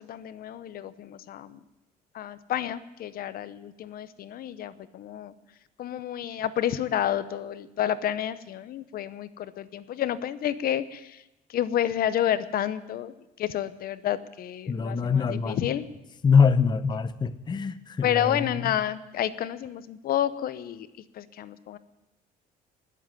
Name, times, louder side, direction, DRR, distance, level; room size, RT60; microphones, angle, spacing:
voice 1, 0.0-1.6 2.1-5.3 5.8-11.2 11.5-13.1 13.4-15.9 18.0-20.9 21.1-21.8, left 11 dB, 60° left, 0.8 m, -30 dB
voice 2, 14.7-15.8 16.2-18.7, left 5 dB, 25° left, 0.7 m, -24 dB
19.5 x 7.6 x 9.6 m
cardioid pair, 110°, 17 cm